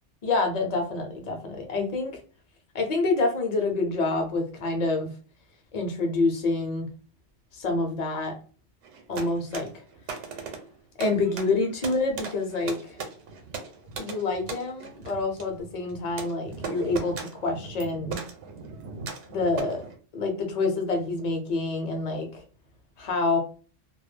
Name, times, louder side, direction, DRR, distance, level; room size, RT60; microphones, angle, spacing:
voice 1, 0.2-2.2 2.7-5.1 5.7-6.9 7.5-8.3 9.1-9.8 11.0-13.0 14.0-18.2 19.3-22.4 23.0-23.4, left 3 dB, 45° left, 3 dB, 0.6 m, -27 dB
sound 1, 8.8-19.9, right 5 dB, 80° right, 0.9 m, -39 dB
2.3 x 2.0 x 3.2 m, 0.39 s
omnidirectional pair, 1.2 m